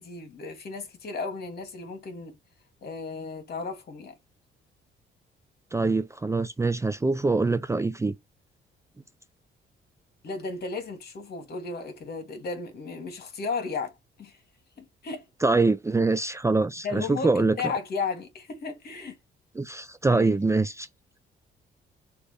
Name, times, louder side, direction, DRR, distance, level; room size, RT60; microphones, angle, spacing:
voice 1, 0.0-2.4 2.8-4.1 10.2-14.4 14.8-15.2 16.8-19.2 20.1-20.4, left 4 dB, 55° left, 2.5 m, -34 dB
voice 2, 5.7-8.2 15.4-17.6 19.6-20.9, right 3 dB, 15° right, 0.5 m, -24 dB
6.5 x 3.0 x 5.8 m
cardioid pair, 90°, 20 cm